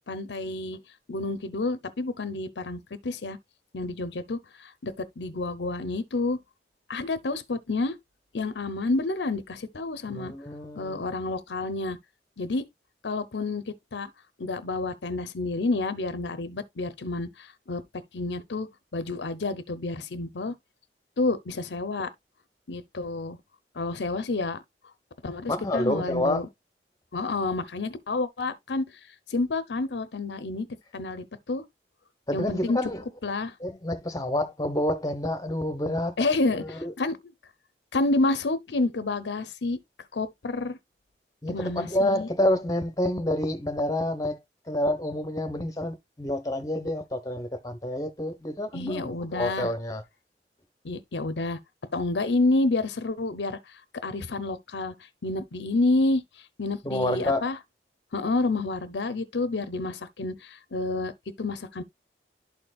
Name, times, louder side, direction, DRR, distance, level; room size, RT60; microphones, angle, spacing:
voice 1, 0.1-0.8 1.1-3.4 3.7-6.4 6.9-7.9 8.3-10.3 10.7-12.0 12.4-12.6 13.0-14.1 14.4-17.8 18.1-18.7 18.9-20.5 21.2-22.1 22.7-23.4 23.7-24.6 25.2-26.5 27.1-28.9 29.3-30.7 30.9-31.6 32.3-32.8 33.2-33.5 36.2-37.3 37.9-39.8 40.1-40.8 41.5-42.3 48.7-49.7 50.8-51.6 51.9-53.6 54.0-54.9 55.2-56.2 56.6-57.6 58.1-61.1 61.4-61.8, left 2 dB, 80° left, 0.8 m, -29 dB
voice 2, 10.1-11.0 25.5-26.4 32.3-33.0 33.6-36.2 36.5-36.9 41.4-44.4 44.7-50.0 56.8-57.5, left 1 dB, 20° left, 0.9 m, -28 dB
12.0 x 4.4 x 2.4 m
head